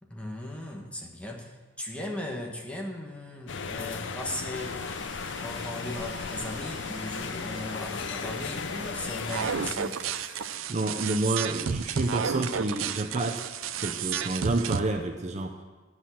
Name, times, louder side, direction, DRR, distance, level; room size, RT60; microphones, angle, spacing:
voice 1, 0.0-5.1 5.4-10.0, left 1 dB, 5° left, 0 dB, 1.1 m, -37 dB
sound 1, 3.5-9.7, left 5 dB, 65° left, 0.5 m, -35 dB
Domestic sounds home sounds, 4.6-10.6, right 4 dB, 65° right, 1.6 m, -48 dB
sound 2, 9.3-14.8, right 7 dB, 90° right, 0.5 m, -31 dB
voice 2, 10.7-13.5 13.8-15.5, right 2 dB, 35° right, 4 dB, 0.6 m, -29 dB
10.5 x 6.1 x 7.3 m, 1.3 s
head